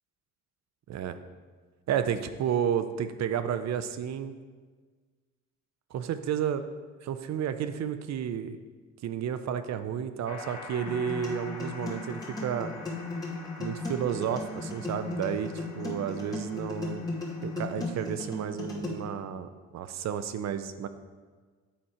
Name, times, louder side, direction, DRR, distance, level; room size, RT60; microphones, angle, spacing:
voice 1, 1.9-4.3 5.9-6.6 7.0-8.6 9.0-12.7 13.6-17.0 17.4-20.9, right 8 dB, 60° right, 11 dB, 0.6 m, -31 dB
sound 1, 10.2-18.1, left 2 dB, 60° left, 1.8 m, -46 dB
sound 2, 10.9-18.9, left 2 dB, 10° left, 2.5 m, -36 dB
8.7 x 4.2 x 4.9 m, 1.5 s
cardioid pair, 90°, 30 cm